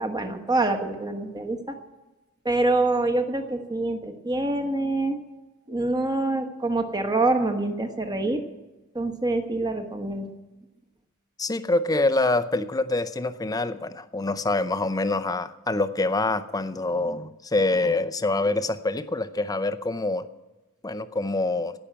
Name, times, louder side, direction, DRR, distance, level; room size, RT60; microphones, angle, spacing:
voice 1, 0.0-1.8 2.4-5.2 5.7-8.4 8.9-10.3, right 2 dB, 20° right, 6 dB, 1.3 m, -25 dB
voice 2, 11.4-20.3 20.8-21.7, left 2 dB, 15° left, 11 dB, 0.6 m, -25 dB
17.0 x 6.5 x 8.8 m, 1.1 s
head